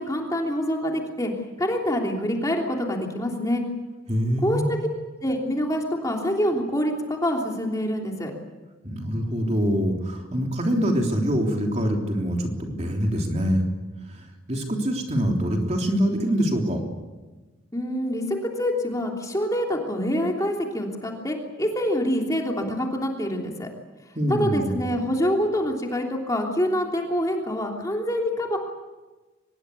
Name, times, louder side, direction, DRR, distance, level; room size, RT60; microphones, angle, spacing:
voice 1, 0.0-1.3 1.6-3.6 4.4-4.8 5.2-8.3 17.7-23.7 24.3-28.6, equal, 15° left, 1 dB, 3.2 m, -26 dB
voice 2, 4.1-4.8 8.8-13.7 14.1-16.8 24.2-24.8, equal, 30° right, 2 dB, 3.5 m, -24 dB
24.5 x 21.5 x 8.4 m, 1.2 s
head